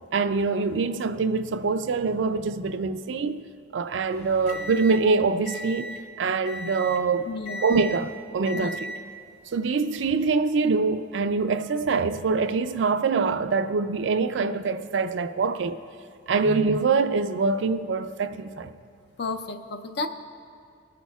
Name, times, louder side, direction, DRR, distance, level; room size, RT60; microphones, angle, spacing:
voice 1, 0.1-3.4 3.7-5.9 6.2-7.3 7.6-8.9 9.5-15.8 16.3-18.7, right 4 dB, 70° right, 0.4 m, -24 dB
sound 1, 4.1-6.1 6.4-7.1 7.4-8.1 8.4-9.1 9.9-10.1, left 1 dB, 35° left, 1.0 m, -37 dB
voice 2, 7.3-7.7 8.5-8.7 16.4-16.6 19.2-20.1, left 3 dB, 55° left, 0.5 m, -32 dB
20.5 x 8.4 x 2.3 m
head